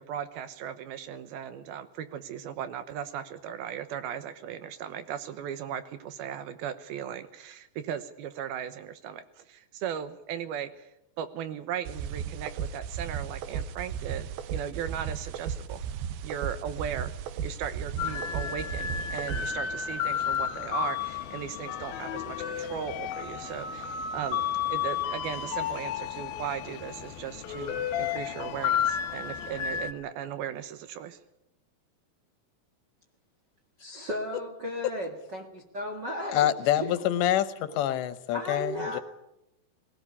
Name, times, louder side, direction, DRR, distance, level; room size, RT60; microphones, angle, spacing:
voice 1, 0.0-10.9 11.2-15.8 16.2-17.1 17.4-31.2, right 9 dB, 70° right, 12 dB, 2.7 m, -37 dB
sound 1, 11.9-19.5, right 8 dB, 90° right, 3.3 m, -35 dB
sound 2, 18.0-29.9, left 8 dB, 70° left, 2.8 m, -32 dB
voice 2, 33.8-37.0 38.3-39.0, left 1 dB, 45° right, 2 dB, 1.4 m, -35 dB
voice 3, 36.3-39.0, left 12 dB, 90° left, 13 dB, 3.3 m, -26 dB
19.5 x 18.0 x 9.8 m, 0.85 s
omnidirectional pair, 4.9 m